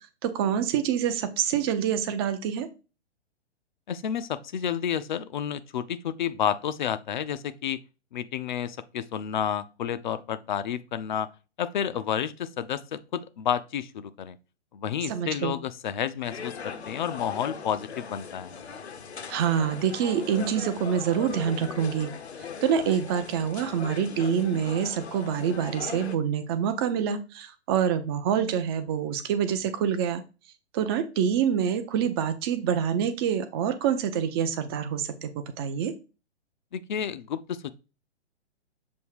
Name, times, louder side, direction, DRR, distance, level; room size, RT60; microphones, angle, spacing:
voice 1, 0.2-2.7 15.0-15.6 19.3-22.1 22.6-30.2 30.7-35.9, right 8 dB, 20° right, 0.6 m, -26 dB
voice 2, 3.9-7.8 8.1-11.3 11.6-14.4 14.7-18.5 36.7-37.7, left 9 dB, 45° left, 0.6 m, -30 dB
sound 1, 16.2-26.2, left 6 dB, 70° left, 0.9 m, -39 dB
7.2 x 2.8 x 4.7 m
figure-of-eight pair, 120°, 34 cm